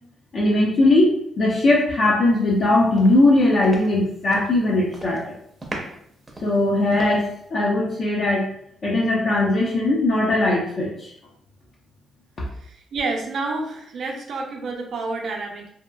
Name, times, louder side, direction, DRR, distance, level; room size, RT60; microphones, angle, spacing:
voice 1, 0.3-5.3 6.4-7.3 7.5-8.5 8.8-11.1, left 2 dB, 50° left, -5 dB, 0.5 m, -19 dB
sound 1, 2.5-2.7 3.0-4.6 4.9-5.3 5.6-7.5, right 1 dB, 20° right, 0.6 m, -38 dB
voice 2, 12.5-15.7, right 3 dB, 60° right, 1 dB, 0.6 m, -29 dB
2.8 x 2.3 x 2.2 m, 0.69 s
cardioid pair, 90°, 0 cm